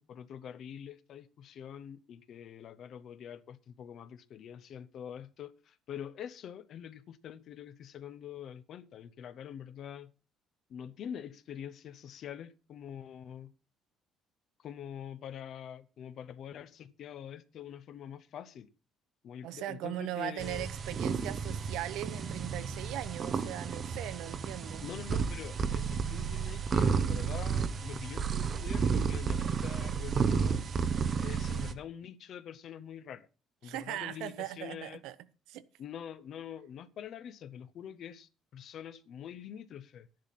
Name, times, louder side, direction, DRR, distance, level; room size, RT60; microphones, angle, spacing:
voice 1, 0.0-10.1 10.7-13.5 14.6-18.7 19.2-20.7 24.8-30.6 31.2-33.3 33.6-35.0 35.8-40.1, left 9 dB, 45° left, 0.8 m, -45 dB
voice 2, 19.4-24.8 33.6-35.2 35.5-35.6, right 13 dB, 85° right, 0.8 m, -39 dB
sound 1, 20.4-31.7, right 6 dB, 30° right, 0.9 m, -32 dB
13.0 x 10.5 x 4.2 m
cardioid pair, 170°, 0 cm